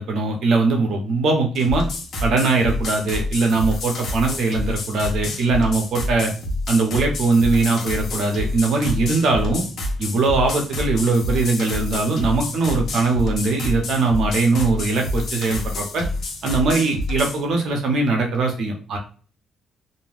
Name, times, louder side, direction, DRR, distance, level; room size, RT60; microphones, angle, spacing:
voice 1, 0.0-1.8 2.2-6.3 6.7-9.6 10.0-16.0 16.4-19.0, right 3 dB, 70° right, 2 dB, 0.9 m, -21 dB
sound 1, 1.5-17.4, left 2 dB, 60° left, 1.0 m, -28 dB
2.7 x 2.2 x 3.3 m, 0.39 s
cardioid pair, 90°, 0 cm